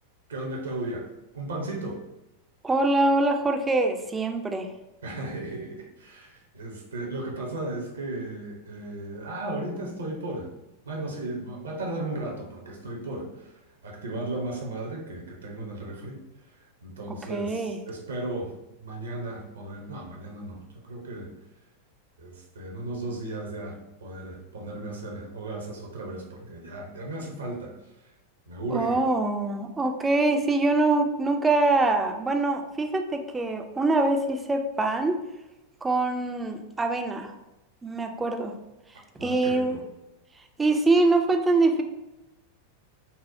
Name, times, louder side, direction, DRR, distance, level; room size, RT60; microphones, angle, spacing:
voice 1, 0.3-1.1 1.3-2.0 5.0-10.5 10.8-13.5 13.8-16.2 16.8-18.5 18.8-21.3 22.2-23.7 24.0-27.7 28.5-29.0 39.2-39.8, right 2 dB, 70° right, 0 dB, 0.7 m, -35 dB
voice 2, 2.6-4.7 17.3-17.8 28.7-35.2 35.8-37.3 37.8-38.5 39.2-39.8 40.6-41.8, right 2 dB, 15° right, 4 dB, 0.3 m, -24 dB
4.1 x 2.0 x 2.6 m, 0.99 s
figure-of-eight pair, 90°, 0 cm